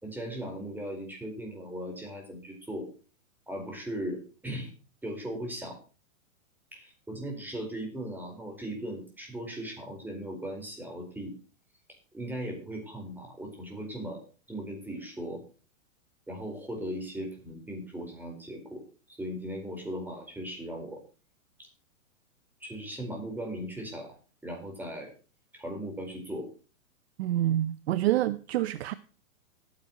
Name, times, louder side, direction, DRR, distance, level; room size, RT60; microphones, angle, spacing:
voice 1, 0.0-2.9 3.5-4.7 5.0-5.8 6.7-11.3 12.1-14.2 14.5-15.4 16.3-18.8 19.1-21.0 22.6-25.1 25.5-26.5, right 1 dB, 5° right, 4.5 m, -38 dB
voice 2, 27.2-28.9, right 13 dB, 50° right, 0.8 m, -27 dB
17.5 x 10.0 x 3.0 m
hypercardioid pair, 145°, 40 cm